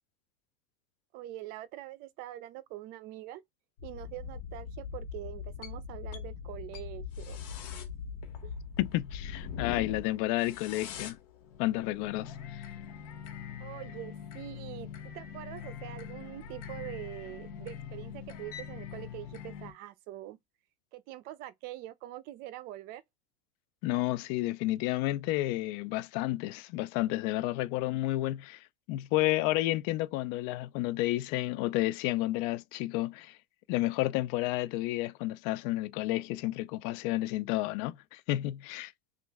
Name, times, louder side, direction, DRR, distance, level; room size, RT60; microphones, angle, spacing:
voice 1, 1.1-3.4 3.8-7.4 7.7-7.8 8.4-8.5 13.6-14.9 15.1-20.4 20.9-23.0, right 14 dB, 50° right, 0.6 m, -44 dB
sound 1, 3.8-19.7, left 7 dB, 75° left, 1.1 m, -42 dB
voice 2, 8.8-11.2 11.6-12.6 23.8-33.4 33.7-38.9, left 17 dB, 55° left, 0.4 m, -31 dB
3.0 x 2.5 x 3.4 m
supercardioid pair, 130°, 20 cm